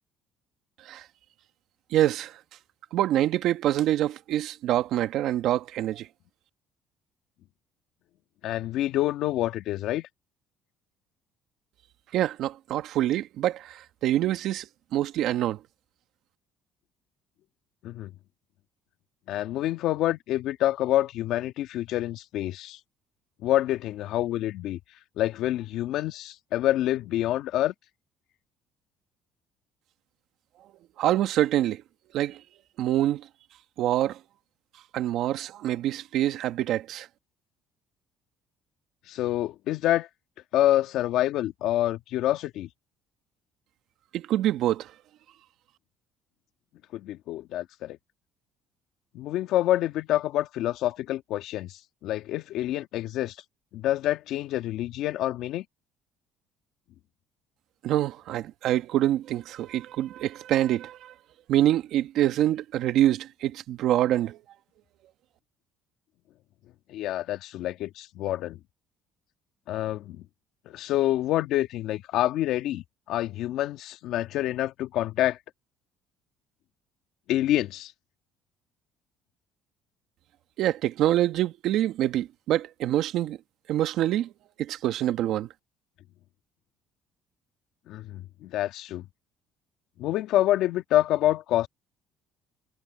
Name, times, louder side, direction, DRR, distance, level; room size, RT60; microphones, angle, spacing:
voice 1, 1.9-2.3 2.9-6.1 12.1-14.7 14.9-15.6 31.0-31.8 32.1-32.4 32.8-33.2 33.8-34.2 34.9-37.1 44.1-44.9 57.8-61.1 61.5-64.4 80.6-83.4 83.7-84.3 84.6-85.5, right 13 dB, 70° right, 1.7 m, -25 dB
voice 2, 8.4-10.1 17.8-18.1 19.3-22.8 23.4-24.8 25.2-27.7 39.1-40.1 40.5-42.7 46.9-48.0 49.1-53.4 53.7-55.6 66.9-68.6 69.7-70.2 70.7-75.4 77.3-77.9 87.9-89.1 90.0-91.7, left 14 dB, 70° left, 1.8 m, -27 dB
supercardioid pair, 90°, 0 cm